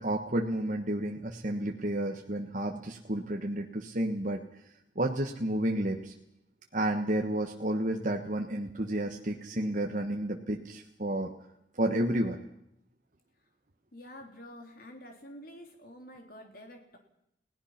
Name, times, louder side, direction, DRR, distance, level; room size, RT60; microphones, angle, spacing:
voice 1, 0.0-4.4 4.9-6.1 6.7-11.3 11.7-12.4, right 1 dB, 45° right, 3 dB, 1.3 m, -31 dB
voice 2, 13.9-17.0, equal, 50° left, 3 dB, 3.6 m, -48 dB
30.0 x 17.5 x 5.9 m, 0.78 s
head